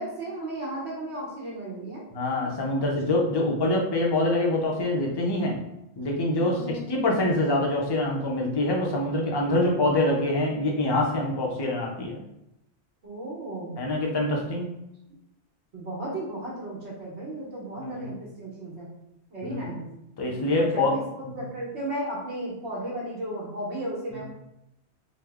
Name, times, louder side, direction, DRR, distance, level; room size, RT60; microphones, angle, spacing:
voice 1, 0.0-2.0 6.3-7.1 13.0-13.8 15.7-18.9 19.3-19.8 20.6-24.2, right 1 dB, 80° right, -4 dB, 1.4 m, -34 dB
voice 2, 2.1-5.6 6.0-6.6 6.9-12.2 13.8-14.7 17.8-18.1 19.4-19.7 20.2-20.9 21.3-21.4, left 1 dB, 35° left, -1 dB, 0.4 m, -25 dB
3.1 x 2.1 x 3.4 m, 0.84 s
omnidirectional pair, 1.1 m